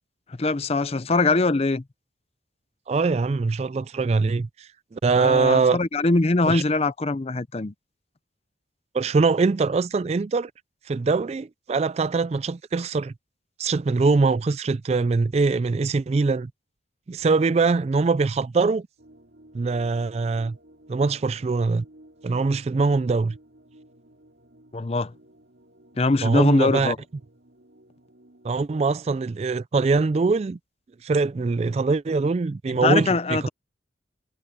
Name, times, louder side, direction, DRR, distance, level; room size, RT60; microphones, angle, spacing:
voice 1, 0.4-1.8 5.2-7.7 24.7-25.1 26.0-27.0 32.7-33.5, left 3 dB, 30° left, 0.5 m, -22 dB
voice 2, 2.9-5.8 6.5-6.6 8.9-10.5 10.9-13.1 13.6-16.5 17.1-18.9 19.5-20.6 20.9-21.8 22.2-23.4 26.2-26.9 28.4-30.6 31.0-33.5, right 4 dB, 35° right, 0.3 m, -23 dB
sound 1, 19.0-28.7, right 1 dB, 65° right, 4.0 m, -54 dB
head